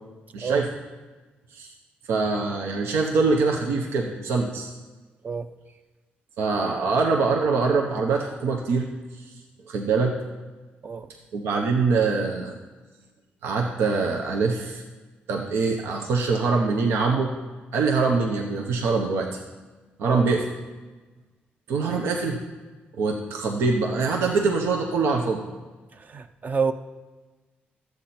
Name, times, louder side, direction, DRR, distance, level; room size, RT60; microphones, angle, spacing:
voice 1, 0.3-0.7 1.5-1.7 2.1-4.7 6.4-8.9 9.1-9.3 9.7-10.1 11.3-12.5 13.4-14.8 15.3-17.3 17.7-19.4 20.0-20.5 21.7-22.4 23.0-25.4, right 4 dB, 90° right, 1 dB, 0.9 m, -24 dB
voice 2, 26.1-26.7, right 5 dB, 45° right, 9 dB, 0.6 m, -27 dB
11.5 x 8.1 x 4.3 m, 1.3 s
cardioid pair, 90°, 4 cm